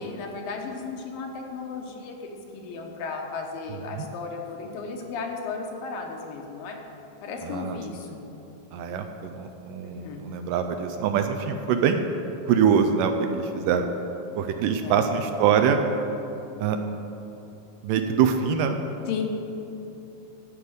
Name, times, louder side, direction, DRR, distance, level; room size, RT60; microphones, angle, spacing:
voice 1, 0.0-6.8 7.2-8.2 9.8-10.2 14.8-15.0 19.1-19.2, left 4 dB, 80° left, 2 dB, 2.8 m, -35 dB
voice 2, 7.4-7.8 8.7-12.1 12.5-13.9 14.4-15.8 16.6-16.8 17.8-18.8, right 7 dB, 80° right, 6 dB, 2.1 m, -24 dB
13.5 x 5.2 x 8.0 m, 2.8 s
omnidirectional pair, 4.1 m